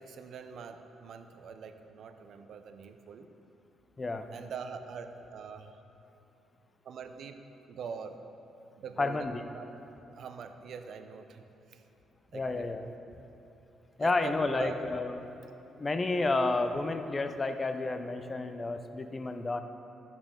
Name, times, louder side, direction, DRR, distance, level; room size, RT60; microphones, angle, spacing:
voice 1, 0.0-3.3 4.3-5.7 6.8-7.4 7.7-8.2 8.8-9.3 9.5-9.7 10.1-11.8 12.3-12.7 14.0-14.7, right 6 dB, 65° right, 8 dB, 0.6 m, -43 dB
voice 2, 4.0-4.3 9.0-9.4 12.3-12.8 14.0-15.2 15.8-19.6, left 3 dB, 25° left, 8 dB, 0.5 m, -31 dB
11.0 x 7.3 x 3.7 m, 2.9 s
cardioid pair, 90°, 0 cm